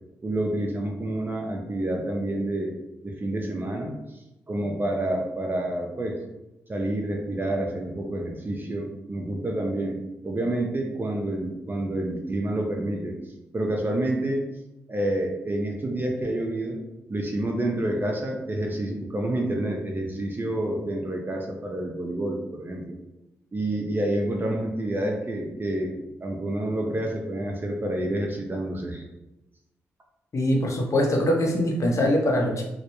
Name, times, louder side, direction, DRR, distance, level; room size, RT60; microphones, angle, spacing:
voice 1, 0.2-2.7 3.0-4.0 4.5-6.2 6.7-13.2 13.5-14.4 14.9-16.8 17.1-22.9 23.5-29.0, right 1 dB, 30° right, 1 dB, 0.5 m, -28 dB
voice 2, 30.3-32.6, left 1 dB, 45° left, 0 dB, 0.6 m, -23 dB
2.0 x 2.0 x 2.9 m, 0.93 s
hypercardioid pair, 40°, 7 cm